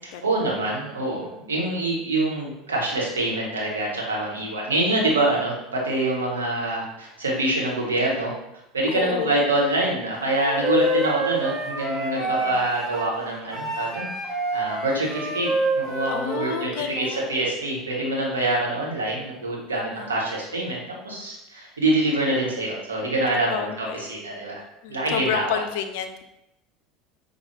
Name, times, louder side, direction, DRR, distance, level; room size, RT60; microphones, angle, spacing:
voice 1, 0.0-8.3 8.7-24.6 24.9-25.6, right 2 dB, 80° right, -3 dB, 0.9 m, -25 dB
voice 2, 8.9-9.4 12.2-12.6 16.1-17.4 19.7-20.1 23.5-24.1 24.8-26.2, left 8 dB, 65° left, 7 dB, 0.3 m, -30 dB
Wind instrument woodwind instrument, 10.3-13.1 13.5-16.6, right 1 dB, 35° right, 1.2 m, -27 dB
5.4 x 2.2 x 3.1 m, 0.88 s
figure-of-eight pair, 70°, 0 cm